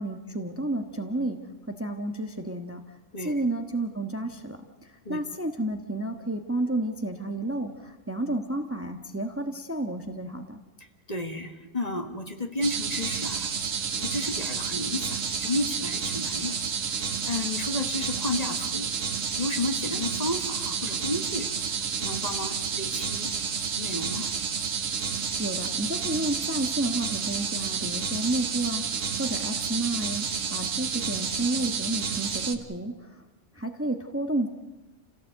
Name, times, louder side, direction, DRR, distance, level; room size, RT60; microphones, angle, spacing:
voice 1, 0.0-1.4 1.7-2.8 3.2-4.6 5.1-10.6 25.4-32.9 33.5-34.5, right 1 dB, 10° right, 5 dB, 1.2 m, -31 dB
voice 2, 10.8-13.5 14.0-18.9 19.4-21.7 22.0-23.3 23.8-24.4, left 2 dB, 30° left, 5 dB, 1.8 m, -32 dB
sound 1, 12.6-32.5, right 6 dB, 85° right, 1.7 m, -30 dB
28.5 x 17.0 x 8.0 m, 1.1 s
omnidirectional pair, 1.3 m